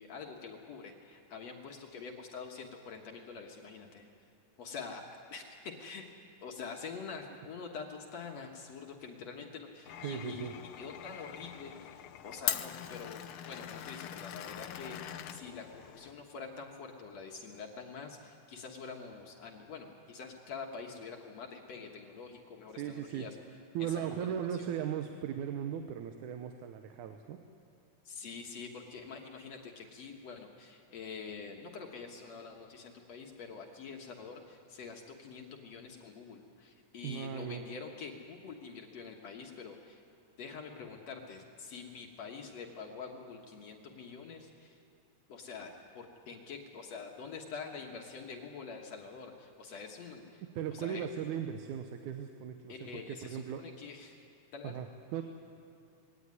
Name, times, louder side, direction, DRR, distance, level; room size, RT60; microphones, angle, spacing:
voice 1, 0.0-4.1 4.6-5.0 5.3-6.1 6.4-10.5 10.8-23.4 23.8-24.7 28.1-40.0 40.4-44.8 45.3-50.4 50.7-51.1 52.7-54.2 54.5-54.8, left 5 dB, 60° left, 1 dB, 2.5 m, -46 dB
Glass, 9.9-16.1, left 10 dB, 80° left, 1.2 m, -41 dB
voice 2, 10.0-10.5 22.8-23.3 23.7-27.4 37.0-37.6 50.6-53.6 54.6-55.2, right 9 dB, 85° right, 6 dB, 2.4 m, -37 dB
21.0 x 17.5 x 9.7 m, 2.7 s
omnidirectional pair, 3.4 m